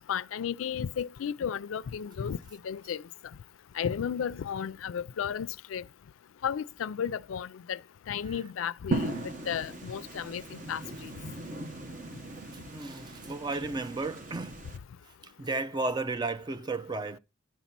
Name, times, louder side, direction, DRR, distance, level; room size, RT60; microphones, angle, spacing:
voice 1, 0.1-2.4 2.6-3.0 3.8-5.8 6.4-7.8 8.1-10.4 10.7-11.1, left 8 dB, 90° left, 0.4 m, -33 dB
sound 1, 8.9-14.8, right 2 dB, 40° right, 1.1 m, -38 dB
voice 2, 12.5-14.7 15.2-17.2, right 3 dB, 20° right, 0.4 m, -34 dB
10.5 x 4.1 x 5.9 m
head